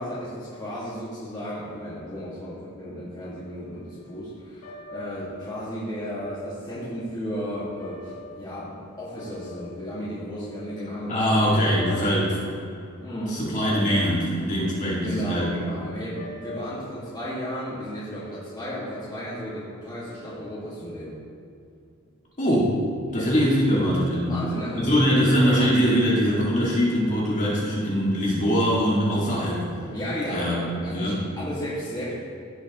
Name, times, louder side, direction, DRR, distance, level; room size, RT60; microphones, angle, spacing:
voice 1, 0.0-11.4 11.7-12.3 13.0-13.4 14.9-21.2 23.1-23.3 24.3-25.2 29.9-32.1, equal, 20° left, -10 dB, 1.9 m, -34 dB
sound 1, 3.4-17.3, left 3 dB, 85° left, 1.6 m, -43 dB
voice 2, 11.1-12.3 13.3-15.5 22.4-22.8 23.1-24.4 24.8-29.7 30.3-31.2, equal, 35° left, -6 dB, 2.3 m, -22 dB
16.0 x 6.3 x 3.1 m, 2.5 s
head